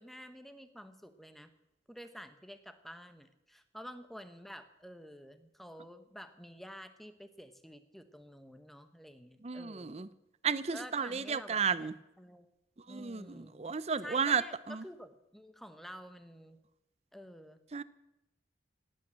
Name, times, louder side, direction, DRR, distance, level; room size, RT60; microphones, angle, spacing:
voice 1, 0.0-1.5 1.9-10.1 10.7-11.9 12.2-12.5 12.9-13.8 14.0-16.6 17.1-17.6, equal, ahead, 9 dB, 0.9 m, -50 dB
voice 2, 9.4-10.1 10.4-11.9 12.9-14.4 14.7-14.8 17.7-17.8, right 6 dB, 35° right, 16 dB, 0.5 m, -33 dB
17.5 x 8.8 x 7.5 m, 0.91 s
head